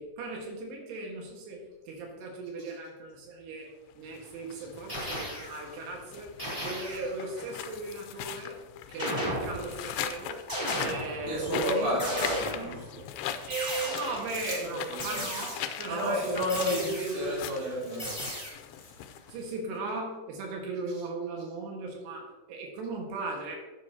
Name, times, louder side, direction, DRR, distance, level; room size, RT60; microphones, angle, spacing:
voice 1, 0.0-3.7 4.0-8.6 8.9-10.4 10.8-12.3 13.4-17.4 19.3-23.6, right 3 dB, 90° right, 0 dB, 3.6 m, -37 dB
sound 1, 4.0-19.8, left 10 dB, 85° left, 2.5 m, -40 dB
sound 2, 4.9-5.7 6.4-7.2 9.0-9.8 10.5-11.4 12.0-12.8 13.5-14.4 15.0-15.9 16.5-17.3 18.0-18.5, equal, 10° right, 2.5 m, -35 dB
voice 2, 11.3-13.1 14.6-15.2 15.9-18.3, equal, 60° right, -7 dB, 4.9 m, -32 dB
Chewing mastication, 14.1-19.5, left 2 dB, 25° left, 2.5 m, -46 dB
11.5 x 8.6 x 2.8 m, 1.2 s
omnidirectional pair, 4.7 m